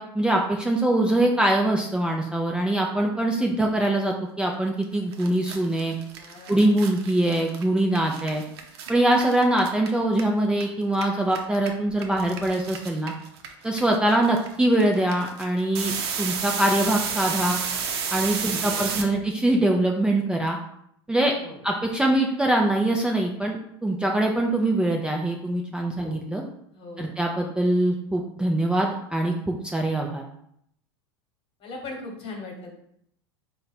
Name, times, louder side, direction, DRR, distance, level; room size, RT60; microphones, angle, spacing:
voice 1, 0.0-5.9 6.5-8.4 8.9-13.1 13.6-17.6 18.1-20.6 21.1-21.3 21.6-23.6 23.8-26.4 27.0-30.2, right 1 dB, 5° right, 0 dB, 0.4 m, -23 dB
voice 2, 3.3-3.8 6.1-6.7 18.3-19.2 21.3-21.6 25.9-26.2 26.7-27.1 31.6-32.7, left 2 dB, 45° left, 1 dB, 1.2 m, -40 dB
sound 1, 4.8-4.9 5.1-10.6 10.9-19.0, right 6 dB, 75° right, 0.7 m, -31 dB
3.7 x 2.2 x 4.1 m, 0.72 s
hypercardioid pair, 100°, 13 cm